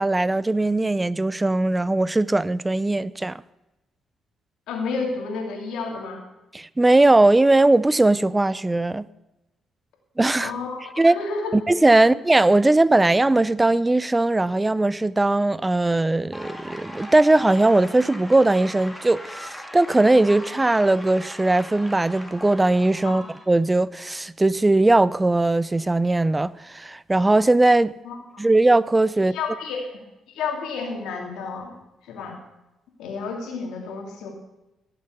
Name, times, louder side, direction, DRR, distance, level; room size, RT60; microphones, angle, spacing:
voice 1, 0.0-3.4 6.5-9.1 10.2-10.5 11.0-11.2 11.5-27.9 28.4-29.3, right 2 dB, 15° right, 0.5 m, -19 dB
voice 2, 4.7-6.2 10.4-11.6 23.0-23.3 28.0-28.2 29.2-30.0 30.3-31.7 32.0-32.4 33.0-34.3, left 4 dB, 85° left, 2.9 m, -31 dB
sound 1, 16.3-23.5, left 1 dB, 5° left, 2.3 m, -39 dB
16.5 x 7.0 x 6.7 m
cardioid pair, 90°, 0 cm